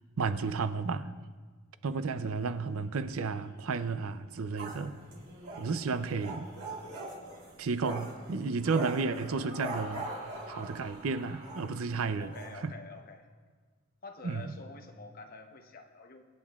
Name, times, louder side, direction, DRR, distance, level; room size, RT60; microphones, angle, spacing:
voice 1, 0.2-1.1 1.8-5.0 5.6-6.5 7.6-10.1 10.5-12.3 12.6-12.7 14.2-14.5, right 4 dB, 65° right, 0.5 m, -32 dB
voice 2, 1.9-2.5 12.2-13.3 14.0-16.3, left 3 dB, 40° left, 0.9 m, -48 dB
Laughter, 2.1-12.5, right 1 dB, 35° right, 2.0 m, -52 dB
sound 1, 4.6-11.0 11.4-11.7 11.9-12.0 12.3-12.6, right 1 dB, 85° right, 2.9 m, -41 dB
25.0 x 9.2 x 2.4 m
head